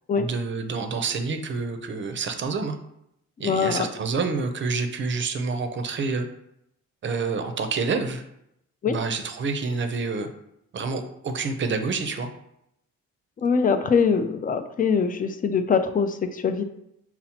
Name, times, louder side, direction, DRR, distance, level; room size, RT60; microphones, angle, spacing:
voice 1, 0.2-2.8 3.4-6.3 7.0-8.2 8.9-10.3 10.7-12.3, right 4 dB, 40° right, 7 dB, 0.5 m, -28 dB
voice 2, 3.4-3.9 8.8-9.0 13.4-16.6, left 5 dB, 30° left, 9 dB, 0.3 m, -23 dB
5.5 x 2.0 x 2.8 m, 0.78 s
cardioid pair, 90°, 30 cm